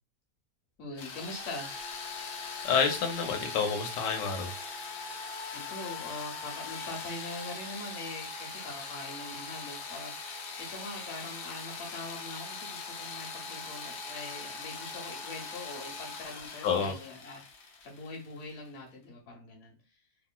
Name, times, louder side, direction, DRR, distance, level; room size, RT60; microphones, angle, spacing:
voice 1, 0.8-1.7 5.5-19.7, left 2 dB, 50° left, -1 dB, 1.2 m, -43 dB
sound 1, 1.0-18.7, left 4 dB, 70° left, 1.0 m, -41 dB
voice 2, 2.3-4.5 16.6-16.9, left 6 dB, 90° left, 3 dB, 1.3 m, -29 dB
2.9 x 2.7 x 2.2 m, 0.31 s
omnidirectional pair, 1.9 m